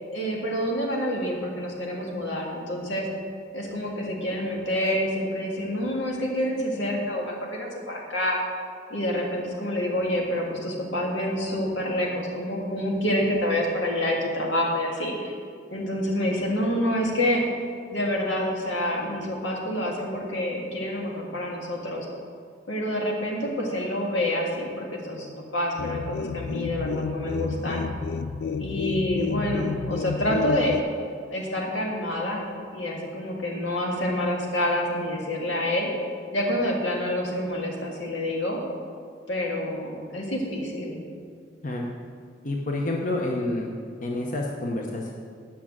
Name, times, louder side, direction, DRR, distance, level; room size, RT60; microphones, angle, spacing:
voice 1, 0.1-3.1 3.5-8.4 8.9-15.4 15.7-17.4 17.9-22.1 22.7-27.8 28.6-30.8 31.3-32.4 32.7-35.9 36.3-38.6 39.3-41.0, left 1 dB, 85° left, -1 dB, 2.0 m, -27 dB
sound 1, 25.8-30.8, left 5 dB, 60° left, 0.4 m, -30 dB
voice 2, 42.4-43.7 44.0-45.1, left 2 dB, 45° left, 0 dB, 0.9 m, -28 dB
8.8 x 6.0 x 7.4 m, 2.1 s
head